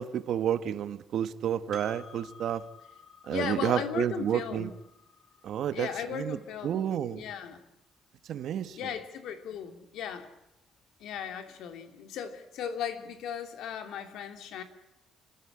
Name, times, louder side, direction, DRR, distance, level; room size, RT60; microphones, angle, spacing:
voice 1, 0.0-2.6 3.3-4.7 5.4-6.4 6.6-7.2 8.3-8.8, right 9 dB, 65° right, 11 dB, 1.3 m, -30 dB
Percussion, 1.7-6.5, left 6 dB, 55° left, 4.0 m, -54 dB
voice 2, 3.3-4.7 5.7-7.6 8.8-10.3 11.0-14.6, left 8 dB, 75° left, 7 dB, 2.9 m, -37 dB
29.5 x 14.5 x 9.8 m, 0.89 s
cardioid pair, 130°, 0 cm